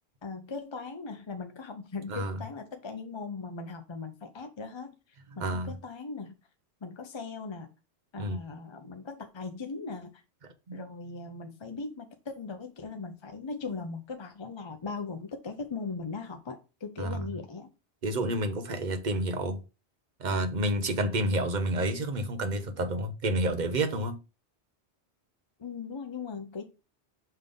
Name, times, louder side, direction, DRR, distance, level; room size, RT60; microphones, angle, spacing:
voice 1, 0.2-4.9 5.4-6.3 6.8-7.7 8.1-10.2 10.7-17.7 25.6-26.6, left 4 dB, 35° left, 0.5 m, -39 dB
voice 2, 5.4-5.7 8.2-8.4 10.7-10.8 17.0-17.3 18.0-19.6 20.2-24.2, right 1 dB, 45° right, 0.9 m, -29 dB
5.6 x 3.6 x 5.2 m
omnidirectional pair, 1.2 m